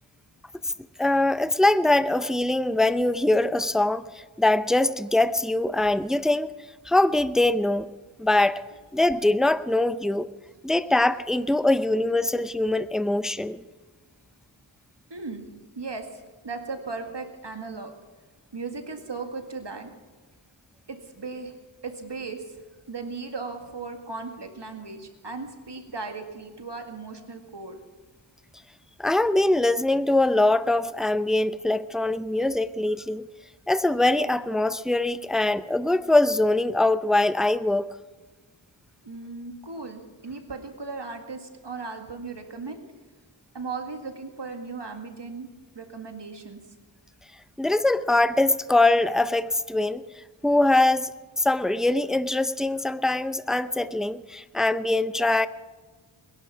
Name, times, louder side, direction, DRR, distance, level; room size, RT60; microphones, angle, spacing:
voice 1, 1.0-6.5 6.8-7.9 8.2-8.6 8.9-10.3 10.6-13.6 29.0-33.3 33.7-37.9 47.6-51.1 51.4-55.5, left 2 dB, ahead, 0.6 m, -23 dB
voice 2, 15.1-15.4 15.8-17.9 18.5-19.9 20.9-21.5 21.8-22.6 22.9-27.8 39.0-42.8 43.5-45.5 45.8-46.6, right 4 dB, 60° right, 2.1 m, -37 dB
21.5 x 11.5 x 6.0 m
wide cardioid pair, 55°, 47 cm